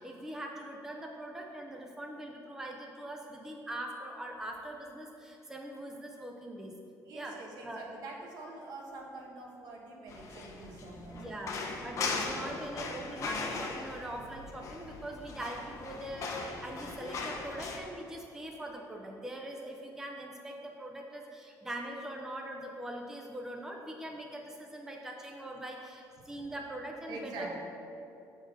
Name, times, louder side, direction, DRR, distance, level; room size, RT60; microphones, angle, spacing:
voice 1, 0.0-6.7 7.1-7.9 11.1-11.6 11.8-27.5, right 1 dB, 5° right, 1 dB, 0.5 m, -42 dB
voice 2, 7.0-11.6 26.3-26.4 27.1-27.6, right 2 dB, 65° right, -1 dB, 1.2 m, -45 dB
sound 1, 10.1-17.8, left 3 dB, 45° left, 0.7 m, -39 dB
6.5 x 4.2 x 6.2 m, 2.7 s
cardioid pair, 155°, 7 cm